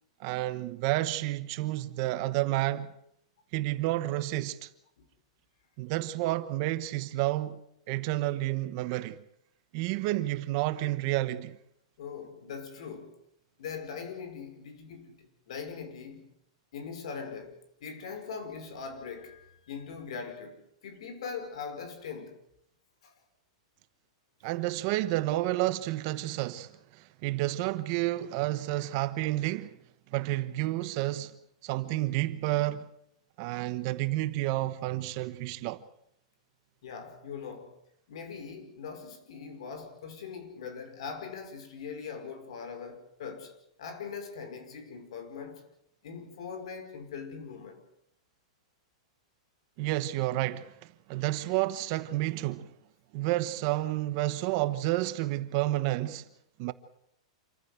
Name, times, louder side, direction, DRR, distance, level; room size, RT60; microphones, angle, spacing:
voice 1, 0.2-2.9 3.5-4.7 5.8-7.6 7.9-9.2 9.7-11.6 24.4-29.8 30.1-31.3 31.6-32.9 33.4-35.8 49.8-52.7 53.1-56.3 56.6-56.7, right 16 dB, 40° right, 1.0 m, -30 dB
voice 2, 12.0-13.1 13.6-16.3 16.7-17.5 17.8-22.4 23.0-23.1 36.8-37.7 38.1-45.6 46.0-47.8, left 6 dB, 65° left, 5.3 m, -41 dB
27.5 x 15.0 x 8.1 m
supercardioid pair, 165°, 3 cm